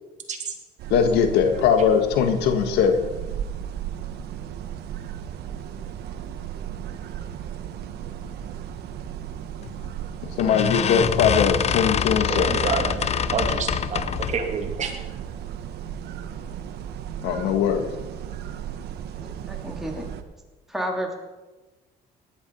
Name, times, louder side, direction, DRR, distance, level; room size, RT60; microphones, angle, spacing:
sound 1, 0.8-20.2, right 9 dB, 75° right, 1.3 m, -35 dB
voice 1, 0.9-3.0 10.2-12.5 17.2-17.9, left 7 dB, 90° left, 7 dB, 1.7 m, -20 dB
sound 2, 9.6-9.9 10.4-14.5, left 8 dB, 40° left, 0.7 m, -25 dB
voice 2, 12.3-13.0 13.3-15.0, right 5 dB, 45° right, 4 dB, 2.7 m, -28 dB
voice 3, 19.5-20.1 20.7-21.1, equal, ahead, 0 dB, 3.2 m, -30 dB
18.0 x 11.0 x 5.5 m, 1.2 s
cardioid pair, 110°, 17 cm